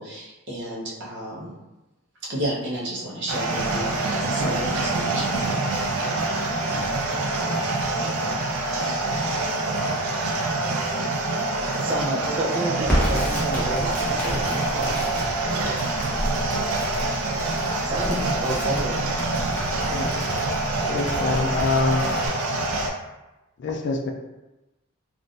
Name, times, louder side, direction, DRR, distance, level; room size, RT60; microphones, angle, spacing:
voice 1, 0.0-1.5 2.2-5.5, right 1 dB, 55° right, -5 dB, 0.8 m, -32 dB
sound 1, 3.3-22.9, right 2 dB, 80° right, 0.5 m, -26 dB
voice 2, 11.8-15.0 17.8-18.9, right 1 dB, 25° right, -1 dB, 0.5 m, -29 dB
Crackle, 12.8-22.3, equal, 10° left, 0.8 m, -31 dB
voice 3, 19.9-20.3 20.9-22.1 23.6-24.1, left 3 dB, 55° left, 3 dB, 0.4 m, -25 dB
3.6 x 2.5 x 2.5 m, 1.0 s
head